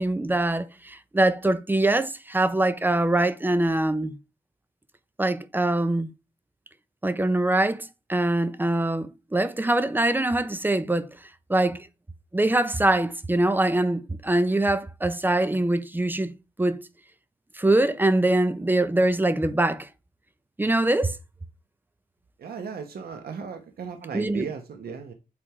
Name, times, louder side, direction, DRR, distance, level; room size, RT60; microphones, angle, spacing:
voice 1, 0.0-4.2 5.2-6.1 7.0-11.1 11.5-11.9 12.3-16.3 16.6-16.9 17.6-19.9 20.6-21.2 24.1-24.5, right 1 dB, 10° right, 0.6 m, -23 dB
voice 2, 22.4-25.1, right 6 dB, 85° right, 1.0 m, -36 dB
8.6 x 3.4 x 4.8 m
wide cardioid pair, 120°, 16 cm